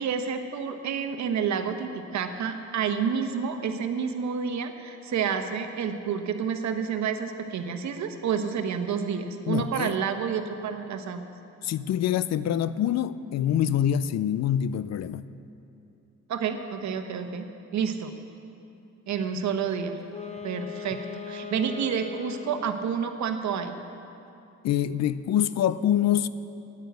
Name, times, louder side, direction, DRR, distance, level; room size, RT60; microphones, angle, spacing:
voice 1, 0.0-11.2 16.3-17.5 17.7-18.1 19.1-20.0 20.4-23.8, right 7 dB, 65° right, 7 dB, 1.1 m, -29 dB
voice 2, 9.5-10.0 11.6-15.2 24.6-26.3, left 10 dB, 60° left, 15 dB, 0.5 m, -25 dB
Wind instrument woodwind instrument, 20.0-22.9, left 6 dB, 20° left, 1.2 m, -39 dB
10.0 x 9.7 x 7.9 m, 2.8 s
cardioid pair, 90°, 30 cm